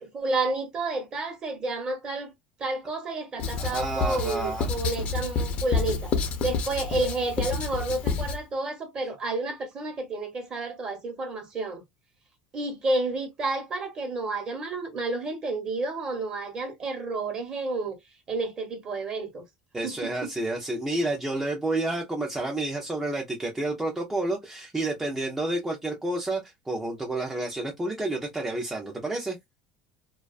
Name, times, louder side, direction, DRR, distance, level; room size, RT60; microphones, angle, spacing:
voice 1, 0.0-2.3 2.6-6.1 6.4-11.8 12.5-18.0 18.3-19.4 19.8-19.9 20.2-20.3, right 2 dB, 30° right, 0.9 m, -30 dB
Writing, 3.4-8.4, left 4 dB, 40° left, 0.5 m, -29 dB
voice 2, 3.6-4.7 19.7-29.4, right 2 dB, 10° right, 0.5 m, -30 dB
2.3 x 2.3 x 2.3 m
cardioid pair, 140°, 3 cm